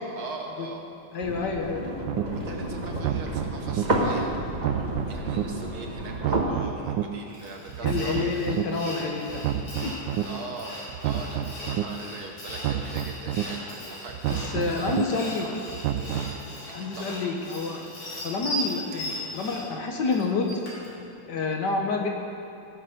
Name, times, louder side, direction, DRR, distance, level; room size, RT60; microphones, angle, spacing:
voice 1, 0.2-0.9 2.3-4.4 5.0-8.4 10.2-15.6 16.0-16.3 16.8-17.2, right 3 dB, 60° right, 2 dB, 1.3 m, -41 dB
voice 2, 1.1-1.8 7.8-9.4 9.8-9.9 14.3-15.5 16.7-17.8 18.2-20.5 21.3-22.1, left 4 dB, 65° left, 2 dB, 1.7 m, -28 dB
sound 1, 1.2-6.4, right 1 dB, 30° right, 1.0 m, -30 dB
sound 2, 2.1-2.2 2.9-3.8 4.5-5.4 6.1-7.0 7.7-8.6 9.3-10.2 10.9-11.8 12.5-13.4 14.1-15.0 15.7-16.4, right 10 dB, 80° right, 1.3 m, -29 dB
Sawing, 7.3-20.9, equal, 85° left, 3.6 m, -38 dB
18.0 x 6.5 x 5.2 m, 2.8 s
omnidirectional pair, 2.1 m